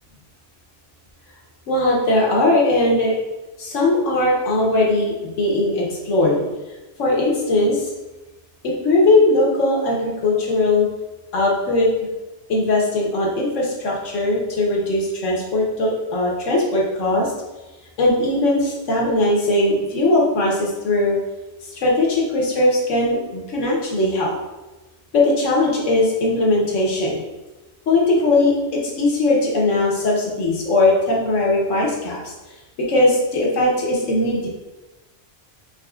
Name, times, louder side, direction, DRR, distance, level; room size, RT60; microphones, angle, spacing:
voice 1, 1.7-3.2 3.6-6.4 7.0-7.9 8.6-10.9 11.3-12.1 12.5-17.3 18.0-21.2 21.6-24.3 25.1-27.2 27.9-32.2 32.9-34.5, left 2 dB, 85° left, -2 dB, 1.3 m, -19 dB
5.2 x 3.4 x 2.4 m, 1.1 s
omnidirectional pair, 1.2 m